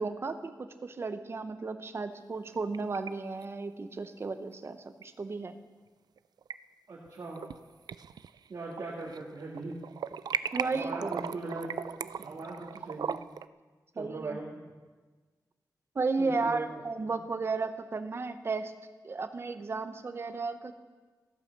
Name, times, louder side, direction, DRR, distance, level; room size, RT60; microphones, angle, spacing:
voice 1, 0.0-5.5 10.5-11.2 14.0-14.4 15.9-18.7 19.0-20.8, right 4 dB, 35° right, 10 dB, 0.8 m, -34 dB
sound 1, 2.4-3.1 3.4-3.5 5.0-5.1 6.2-6.5 7.1-7.6 7.9-9.2 9.5-13.5, right 7 dB, 75° right, 0.4 m, -37 dB
voice 2, 6.9-7.4 8.5-9.7 10.7-11.7 12.2-13.2 13.9-14.6 16.2-16.7 17.0-17.2, right 3 dB, 55° right, -5 dB, 2.2 m, -40 dB
15.0 x 8.9 x 6.6 m, 1.4 s
wide cardioid pair, 175°, 7 cm